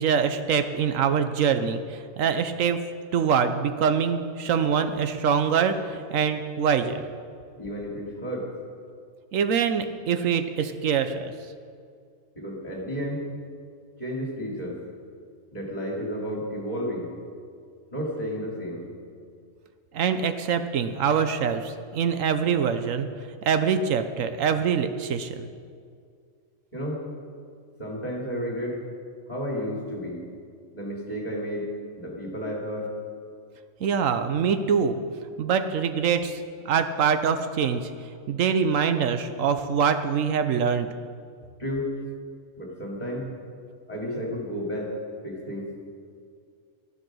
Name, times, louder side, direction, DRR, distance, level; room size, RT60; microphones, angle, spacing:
voice 1, 0.0-2.8 3.1-7.0 9.3-11.3 19.9-23.1 23.4-25.5 33.8-35.0 35.4-36.4 36.6-37.8 38.3-40.9, right 7 dB, 75° right, 9 dB, 1.1 m, -24 dB
voice 2, 7.6-8.5 12.3-13.2 14.0-14.8 15.5-17.1 17.9-18.9 26.7-27.0 27.8-28.8 29.3-30.2 30.7-31.7 32.0-32.9 41.6-41.9 42.6-43.3 43.9-44.9 45.2-45.7, equal, 30° left, -3 dB, 3.0 m, -32 dB
12.5 x 10.5 x 6.2 m, 2.2 s
omnidirectional pair, 1.4 m